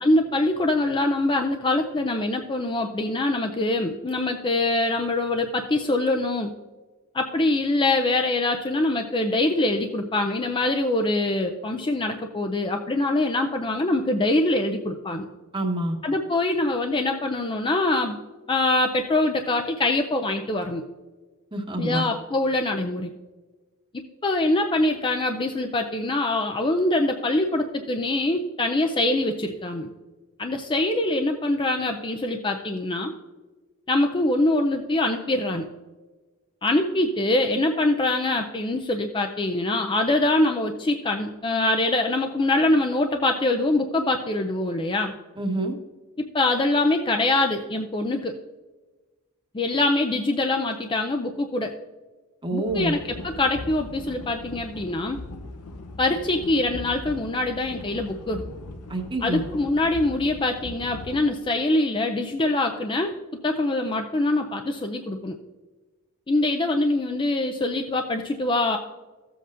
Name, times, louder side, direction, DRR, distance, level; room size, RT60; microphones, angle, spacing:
voice 1, 0.0-6.5 7.1-15.3 16.0-18.2 18.5-20.8 21.8-23.1 23.9-29.9 30.4-33.1 33.9-35.7 36.6-45.1 46.2-48.4 49.5-51.7 52.5-55.2 56.0-58.4 59.2-65.4 66.3-68.8, left 2 dB, 20° left, 4 dB, 0.5 m, -24 dB
voice 2, 15.5-16.0 21.5-22.0 45.4-45.7 52.4-52.9 58.9-59.4, right 1 dB, 20° right, 2 dB, 1.2 m, -26 dB
sound 1, 52.7-61.3, left 2 dB, 85° left, 0.8 m, -39 dB
14.5 x 7.7 x 2.5 m, 1.3 s
head